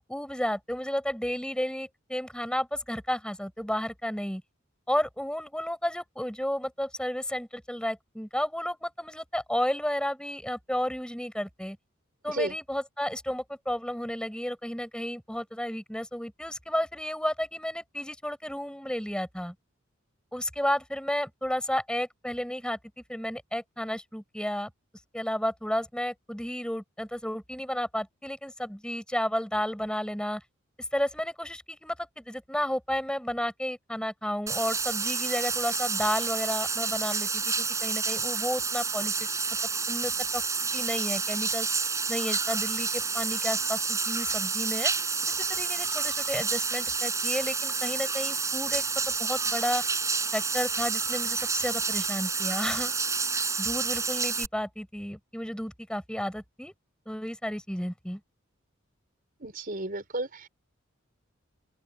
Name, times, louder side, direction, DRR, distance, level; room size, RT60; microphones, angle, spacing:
voice 1, 0.0-4.4 4.9-11.8 12.2-19.5 20.3-22.8 23.1-24.7 25.1-30.4 30.9-39.3 39.9-40.4 40.7-41.7 42.1-44.9 45.5-49.8 50.3-52.9 53.6-56.7 57.0-58.2, equal, 5° left, 5.1 m, -32 dB
Bathtub (filling or washing), 34.5-54.5, right 4 dB, 15° right, 7.0 m, -29 dB
voice 2, 59.4-60.5, right 2 dB, 45° right, 4.7 m, -33 dB
open air
head